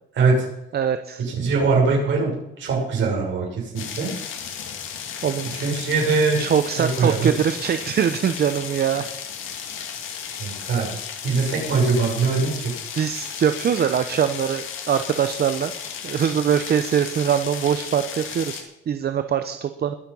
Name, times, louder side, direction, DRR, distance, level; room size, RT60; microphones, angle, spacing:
voice 1, 0.1-0.5 1.2-4.1 5.5-6.4 6.8-7.4 10.4-10.9 11.2-12.7, right 4 dB, 70° right, -1 dB, 6.3 m, -22 dB
voice 2, 0.7-1.2 5.2-5.5 6.4-9.0 12.9-15.7 16.0-19.9, right 8 dB, 55° right, 9 dB, 0.9 m, -23 dB
sound 1, 3.8-18.6, left 7 dB, 85° left, 2.3 m, -34 dB
21.5 x 7.4 x 5.5 m, 0.84 s
cardioid pair, 90°, 20 cm